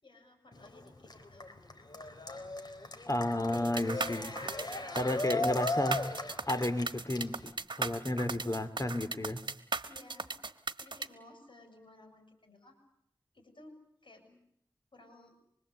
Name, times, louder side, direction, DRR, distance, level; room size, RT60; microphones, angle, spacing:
voice 1, 0.0-1.5 4.6-5.4 9.9-10.3 10.8-12.7 13.3-13.7 14.0-14.4 14.9-15.3, left 2 dB, 80° left, 5 dB, 7.0 m, -57 dB
Cheering, 0.5-7.5, left 2 dB, 55° left, 3.8 m, -38 dB
voice 2, 3.1-4.3 5.0-6.0 6.5-9.4, left 1 dB, 40° left, 9 dB, 2.9 m, -32 dB
sound 1, 3.5-11.1, right 3 dB, 70° right, 1.4 m, -37 dB
25.5 x 24.0 x 8.2 m, 0.74 s
wide cardioid pair, 55°, 8 cm